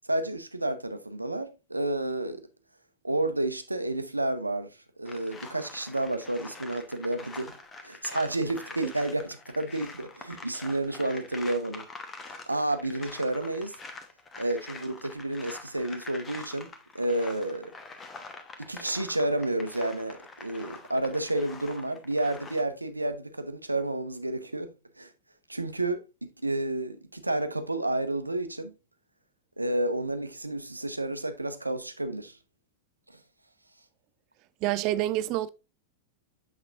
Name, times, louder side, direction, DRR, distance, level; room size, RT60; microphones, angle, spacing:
voice 1, 0.1-2.4 3.0-7.6 7.8-11.9 12.3-13.8 14.4-17.7 18.6-25.1 25.5-28.7 29.6-32.4, right 1 dB, 85° right, 0.6 m, -30 dB
sound 1, 5.1-22.6, left 3 dB, 20° left, 1.0 m, -45 dB
voice 2, 34.6-35.5, right 14 dB, 40° right, 0.4 m, -27 dB
7.3 x 5.9 x 2.5 m
figure-of-eight pair, 90°, 0 cm